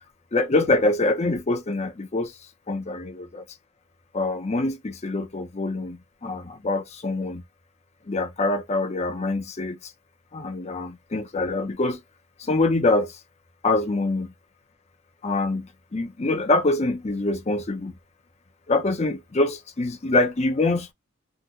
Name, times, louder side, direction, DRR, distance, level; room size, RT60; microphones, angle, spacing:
voice 1, 0.3-2.3 2.7-3.4 4.1-7.4 8.1-9.9 10.3-12.0 12.4-13.2 13.6-14.3 15.2-17.9 18.7-20.9, left 2 dB, 30° left, 0.5 m, -25 dB
3.7 x 2.1 x 2.6 m
head